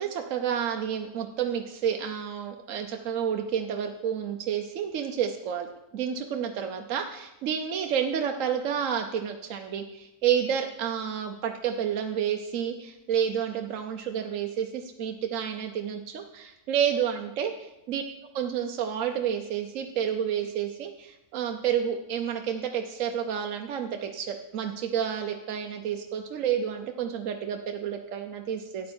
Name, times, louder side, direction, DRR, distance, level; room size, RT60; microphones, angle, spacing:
voice 1, 0.0-5.7 5.9-18.0 18.3-28.9, right 8 dB, 65° right, 4 dB, 1.0 m, -30 dB
12.5 x 8.5 x 4.3 m, 0.93 s
omnidirectional pair, 1.6 m